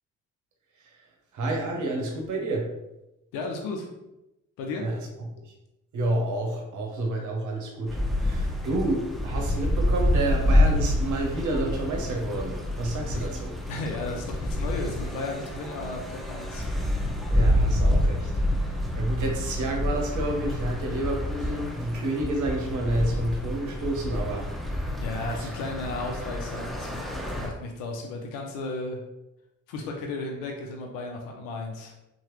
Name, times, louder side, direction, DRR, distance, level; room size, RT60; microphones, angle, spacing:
voice 1, 1.3-2.7 4.8-5.0 5.9-13.5 17.3-18.3 19.0-24.5 25.2-25.5, right 1 dB, 65° right, 1 dB, 0.9 m, -29 dB
voice 2, 3.3-3.9 4.6-4.8 13.7-16.7 25.0-26.9 27.4-29.0 29.7-31.9, left 3 dB, 85° left, 1 dB, 0.5 m, -34 dB
sound 1, 7.9-27.5, left 1 dB, ahead, 1.2 m, -27 dB
2.9 x 2.2 x 3.1 m, 0.91 s
supercardioid pair, 60°, 32 cm